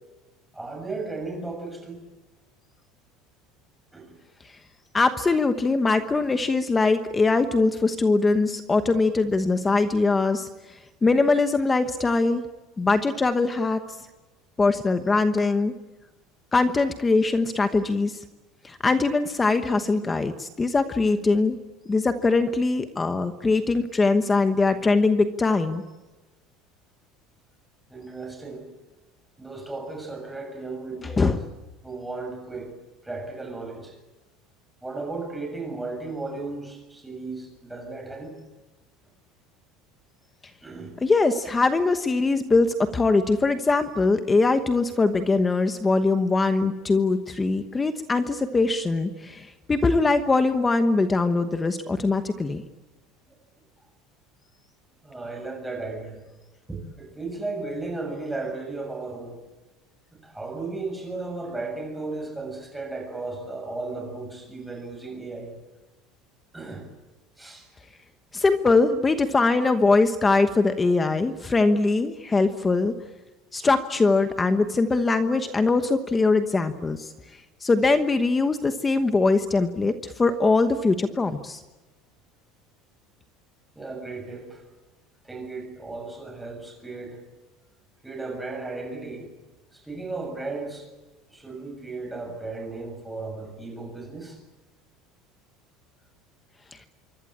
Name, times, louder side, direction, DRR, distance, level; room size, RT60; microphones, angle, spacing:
voice 1, 0.5-2.0 3.9-4.1 27.9-28.7 29.4-31.2 31.8-32.7 33.0-33.9 34.8-38.4 40.6-40.9 53.3-53.4 55.0-56.2 56.7-59.4 60.1-65.5 66.5-66.9 67.4-67.7 83.8-84.6 85.2-87.2 88.0-89.3 89.7-90.9 91.3-94.4, right 3 dB, 5° right, 2 dB, 7.1 m, -35 dB
voice 2, 4.9-10.5 11.0-12.4 12.8-13.8 14.6-15.7 16.5-18.2 18.6-21.6 21.9-25.8 31.2-31.4 41.0-52.6 68.3-72.9 73.5-77.1 77.6-81.6, left 3 dB, 10° left, 9 dB, 1.1 m, -22 dB
26.0 x 24.0 x 8.7 m, 1.1 s
cardioid pair, 175°, 0 cm